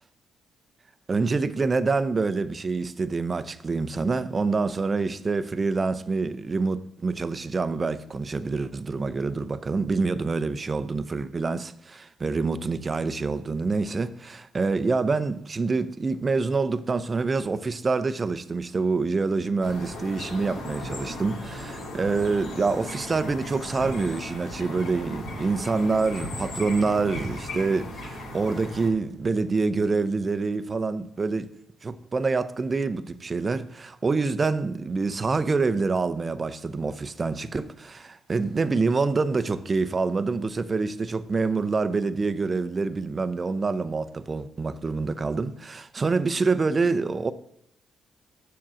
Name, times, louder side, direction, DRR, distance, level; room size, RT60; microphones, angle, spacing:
voice 1, 1.1-31.5 31.8-47.3, right 4 dB, 30° right, 0.6 m, -26 dB
sound 1, 19.6-28.9, left 1 dB, 85° left, 2.5 m, -36 dB
7.4 x 6.0 x 7.5 m
cardioid pair, 90°, 0 cm